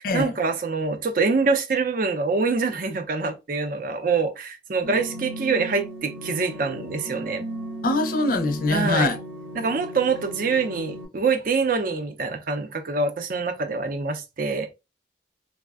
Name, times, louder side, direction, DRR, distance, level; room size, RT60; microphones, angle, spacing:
voice 1, 0.0-7.4 8.7-9.1 9.5-14.7, right 4 dB, 50° right, 0.5 m, -25 dB
sound 1, 4.8-11.1, right 1 dB, 65° right, 0.8 m, -36 dB
voice 2, 7.8-9.2, left 2 dB, 50° left, 0.5 m, -23 dB
3.3 x 2.0 x 2.3 m
head